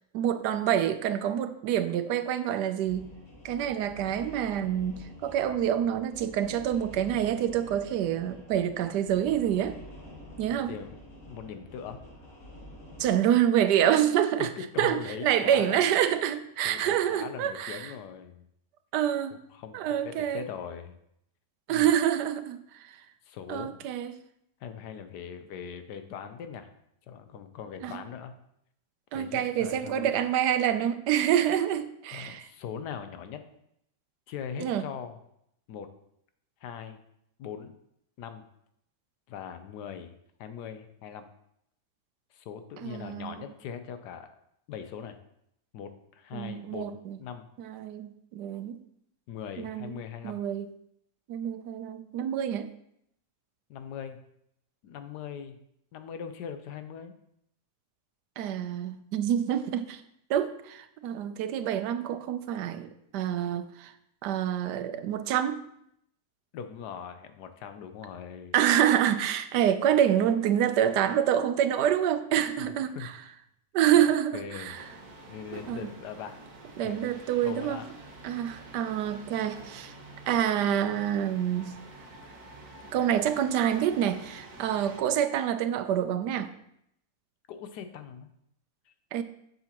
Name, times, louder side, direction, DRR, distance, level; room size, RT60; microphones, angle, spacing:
voice 1, 0.1-3.1 3.4-9.8 10.4-10.7 13.0-14.5 14.8-17.9 18.9-19.4 19.7-20.4 21.7-23.0 23.5-24.1 27.8-28.0 29.1-32.4 34.6-34.8 42.8-43.3 46.3-47.2 47.6-48.8 49.6-49.9 50.2-50.7 51.3-52.7 58.4-60.0 60.3-63.9 64.2-65.6 68.5-73.1 73.7-74.8 75.7-75.8 76.8-77.8 78.2-79.9 80.3-81.8 82.9-86.5 89.1-89.2, right 10 dB, 80° right, 1.2 m, -27 dB
sound 1, 2.8-13.2, left 1 dB, 45° left, 3.0 m, -48 dB
voice 2, 10.7-11.0 11.2-12.0 14.4-15.8 16.6-18.4 19.5-21.0 21.7-21.9 23.3-23.9 24.6-26.7 27.1-28.3 29.1-30.1 32.1-33.4 34.3-35.2 35.7-35.9 36.6-37.0 37.4-37.7 38.2-38.4 39.3-41.3 42.3-44.3 44.7-45.2 45.7-47.5 49.3-50.4 53.7-54.2 54.8-55.6 55.9-57.2 66.5-68.5 72.6-72.7 72.9-73.1 74.3-74.8 75.3-76.4 76.8-77.9 87.5-88.3 88.9-89.0, left 7 dB, 80° left, 1.2 m, -41 dB
sound 2, 74.6-85.0, right 2 dB, 60° right, 1.7 m, -48 dB
7.7 x 6.9 x 2.9 m
omnidirectional pair, 1.8 m